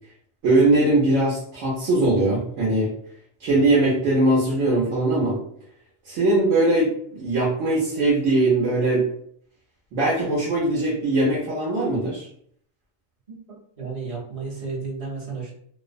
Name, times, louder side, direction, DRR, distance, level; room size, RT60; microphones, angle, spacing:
voice 1, 0.4-2.9 3.4-5.4 6.1-9.1 9.9-12.3, right 2 dB, 75° right, -5 dB, 1.0 m, -21 dB
voice 2, 13.3-15.5, right 4 dB, 35° right, -6 dB, 0.8 m, -33 dB
2.6 x 2.0 x 2.4 m, 0.64 s
omnidirectional pair, 1.3 m